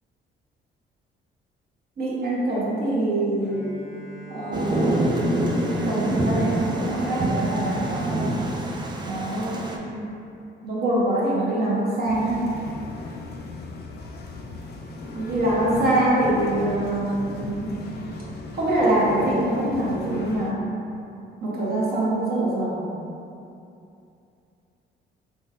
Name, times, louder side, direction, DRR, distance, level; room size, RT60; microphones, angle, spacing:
voice 1, 2.0-3.7 4.3-5.1 5.5-8.4 9.0-10.0 10.6-12.5 15.1-17.8 18.5-20.6 21.4-22.8, right 1 dB, 50° right, -7 dB, 1.0 m, -24 dB
Bowed string instrument, 3.4-9.4, equal, ahead, 0.8 m, -41 dB
Thunder, 4.5-9.8, right 1 dB, 20° right, 0.4 m, -26 dB
sound 1, 12.0-20.5, left 3 dB, 55° left, 0.4 m, -37 dB
3.7 x 2.6 x 2.6 m, 2.6 s
cardioid pair, 90°, 20 cm